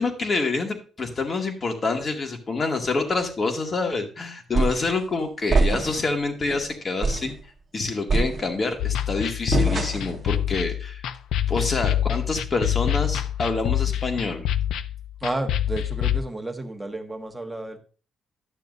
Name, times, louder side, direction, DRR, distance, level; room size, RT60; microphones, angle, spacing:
voice 1, 0.0-7.3 7.7-11.0 11.5-14.5, left 3 dB, 40° left, 3 dB, 2.1 m, -27 dB
sound 1, 4.5-4.9 5.5-6.1 6.5-6.6 7.0-7.4 8.1-8.8 9.5-10.2, right 3 dB, 40° right, 1.2 m, -24 dB
sound 2, 8.8-16.2, left 11 dB, 80° left, 0.5 m, -26 dB
voice 2, 15.2-17.8, right 2 dB, 10° right, 3 dB, 1.5 m, -31 dB
12.0 x 6.8 x 2.6 m, 0.36 s
cardioid pair, 90°, 0 cm